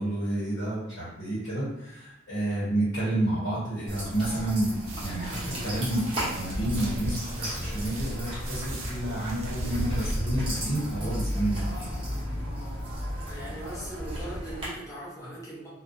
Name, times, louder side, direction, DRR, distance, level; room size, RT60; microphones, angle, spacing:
voice 1, 0.0-11.9, right 1 dB, 65° left, -9 dB, 0.9 m, -30 dB
sound 1, 3.9-14.7, equal, 25° right, 0.7 m, -33 dB
sound 2, 4.9-10.1, right 3 dB, 85° right, 0.5 m, -44 dB
voice 2, 13.3-15.7, right 1 dB, 15° left, -8 dB, 0.7 m, -40 dB
2.4 x 2.1 x 2.5 m, 0.86 s
head